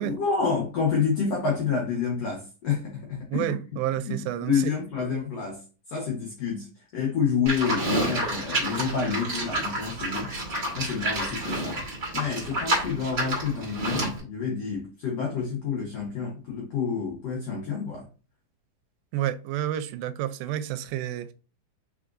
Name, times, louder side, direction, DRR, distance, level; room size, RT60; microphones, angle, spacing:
voice 1, 0.0-3.6 4.0-4.2 4.5-5.6 5.9-10.3 10.7-11.8 12.1-18.1, left 6 dB, 75° left, 1.4 m, -28 dB
voice 2, 3.3-4.5 19.1-21.3, right 12 dB, 90° right, 2.4 m, -29 dB
Livestock farm animals working animals, 7.5-14.2, right 1 dB, 45° right, 1.0 m, -29 dB
4.8 x 3.8 x 2.5 m
omnidirectional pair, 4.1 m